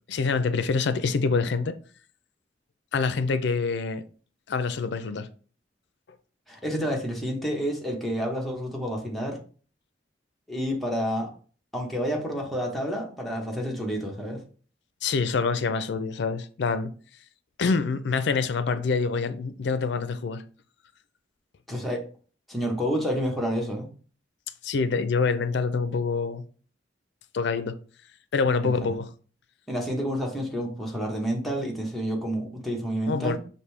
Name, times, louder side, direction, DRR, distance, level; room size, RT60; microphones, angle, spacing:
voice 1, 0.1-1.8 2.9-4.0 4.5-5.3 15.0-16.9 17.6-20.4 24.6-26.4 27.3-27.8 28.3-29.1 33.1-33.4, left 4 dB, 70° left, 0.4 m, -26 dB
voice 2, 6.5-9.4 10.5-11.3 11.7-14.4 21.7-22.0 22.5-23.9 28.6-28.9 29.7-33.4, equal, ahead, 0.9 m, -29 dB
5.1 x 2.7 x 3.2 m
head